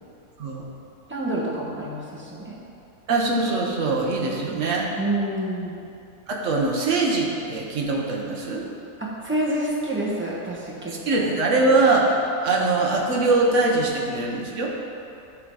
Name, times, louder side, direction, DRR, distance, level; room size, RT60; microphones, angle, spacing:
voice 1, 1.1-2.6 4.5-4.6 5.0-5.8 9.0-11.3, right 1 dB, 10° right, -6 dB, 1.1 m, -28 dB
voice 2, 3.1-4.9 6.3-8.6 10.9-12.1 12.4-14.7, right 3 dB, 50° right, -1 dB, 1.3 m, -22 dB
11.5 x 3.9 x 4.8 m, 2.7 s
omnidirectional pair, 1.7 m